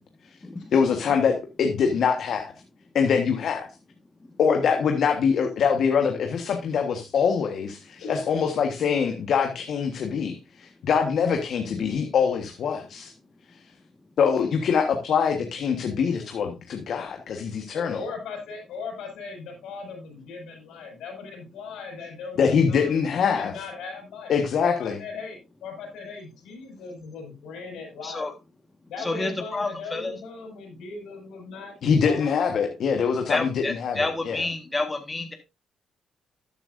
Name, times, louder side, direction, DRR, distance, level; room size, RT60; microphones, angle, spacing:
voice 1, 0.7-2.5 2.9-3.7 4.4-13.1 14.2-18.0 22.4-23.5 24.3-25.0 31.8-34.5, left 6 dB, 65° left, 4 dB, 1.4 m, -24 dB
voice 2, 8.0-8.6 17.7-24.3 24.6-28.3 28.9-31.7 32.0-32.6, left 4 dB, 85° left, 2 dB, 5.6 m, -38 dB
voice 3, 29.0-30.1 33.3-35.3, left 2 dB, 20° left, 5 dB, 1.6 m, -29 dB
13.0 x 8.9 x 2.6 m, 0.26 s
cardioid pair, 90°, 0 cm